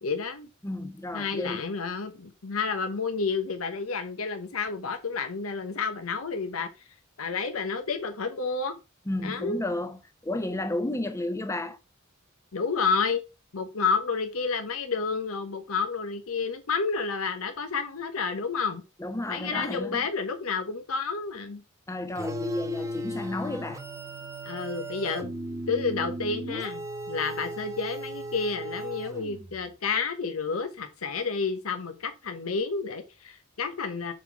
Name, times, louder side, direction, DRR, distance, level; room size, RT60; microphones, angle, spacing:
voice 1, 0.0-0.5 1.1-6.7 7.2-8.7 9.2-9.6 12.5-13.2 13.5-18.8 19.3-21.6 24.4-25.3 25.7-34.1, left 5 dB, 90° left, 0.9 m, -30 dB
voice 2, 0.6-1.7 9.1-11.8 19.0-20.1 21.9-23.8, left 2 dB, 15° left, 0.7 m, -32 dB
sound 1, 22.2-29.6, equal, 15° right, 1.0 m, -36 dB
6.6 x 4.1 x 4.5 m
head